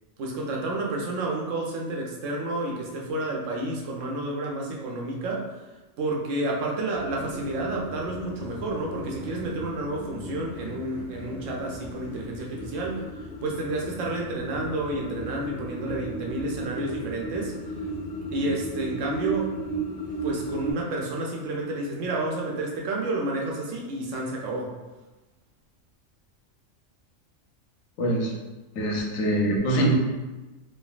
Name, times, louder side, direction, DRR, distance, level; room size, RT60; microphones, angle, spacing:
voice 1, 0.2-17.9 18.3-19.6 20.2-24.8, right 2 dB, 75° right, -1 dB, 0.9 m, -30 dB
sound 1, 6.9-20.7, right 2 dB, 65° left, 0.6 m, -35 dB
voice 2, 28.0-28.3 28.7-30.0, right 1 dB, 90° left, -1 dB, 1.0 m, -23 dB
3.2 x 2.2 x 2.3 m, 1.1 s
omnidirectional pair, 1.4 m